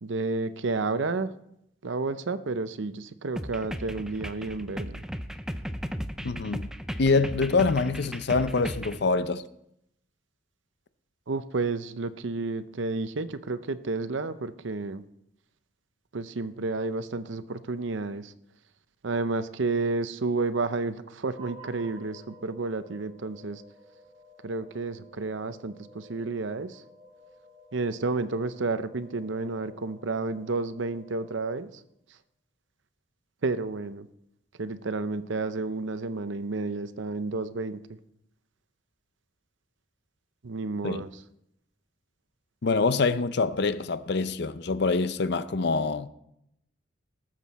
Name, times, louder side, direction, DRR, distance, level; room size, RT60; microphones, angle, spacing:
voice 1, 0.0-1.3 1.8-5.0 11.3-15.0 16.1-18.3 19.0-23.6 24.4-26.8 27.7-31.7 33.4-34.1 34.6-38.0 40.4-41.1, right 3 dB, 70° right, 0.7 m, -31 dB
sound 1, 3.4-9.0, equal, 5° right, 0.5 m, -36 dB
voice 2, 6.2-6.7 7.0-9.4 40.8-41.0 42.6-46.1, left 4 dB, 55° left, 0.6 m, -25 dB
sound 2, 21.3-31.9, right 1 dB, 30° right, 2.5 m, -53 dB
19.0 x 7.5 x 4.2 m
head